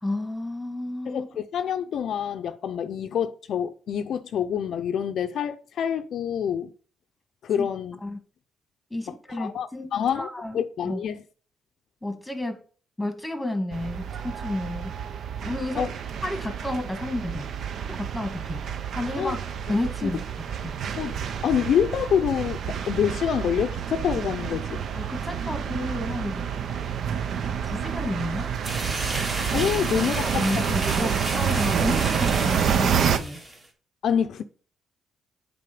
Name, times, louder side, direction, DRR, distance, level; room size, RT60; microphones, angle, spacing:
voice 1, 0.0-1.3 7.6-7.7 8.0-8.2 8.9-11.0 12.0-12.6 13.0-14.9 15.4-15.8 16.2-17.5 17.8-18.7 18.9-20.2 20.6-20.8 24.9-26.5 27.5-28.5 29.9-33.4, left 1 dB, 5° left, 1.6 m, -31 dB
voice 2, 1.1-6.7 7.4-8.0 9.4-10.3 10.5-11.2 15.8-15.9 19.2-19.4 20.0-20.1 21.0-21.1 21.4-24.8 29.3-30.5 30.9-31.0 34.0-34.4, left 8 dB, 65° left, 0.5 m, -26 dB
sound 1, 13.7-33.2, right 7 dB, 65° right, 0.6 m, -28 dB
sound 2, 28.6-33.7, right 1 dB, 30° right, 2.2 m, -33 dB
7.6 x 4.1 x 5.0 m
cardioid pair, 90°, 0 cm